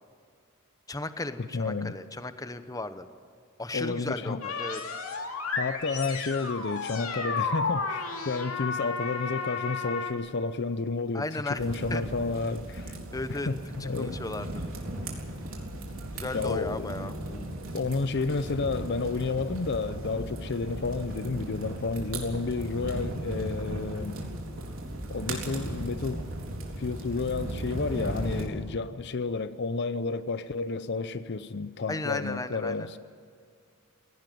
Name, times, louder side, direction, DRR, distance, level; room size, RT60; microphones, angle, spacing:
voice 1, 0.9-3.1 3.6-4.8 11.1-11.6 11.9-12.0 13.1-13.5 13.8-14.6 16.1-17.2 31.9-32.9, left 2 dB, 15° left, 0.9 m, -35 dB
voice 2, 1.5-1.9 3.7-4.4 5.6-13.0 13.3-14.2 16.3-16.9 17.3-24.2 25.1-26.2 26.8-33.0, left 4 dB, 55° left, 0.6 m, -31 dB
sound 1, 4.4-10.1, left 4 dB, 90° left, 2.5 m, -32 dB
sound 2, 11.6-28.5, right 1 dB, 75° right, 3.9 m, -37 dB
17.5 x 17.0 x 9.3 m
head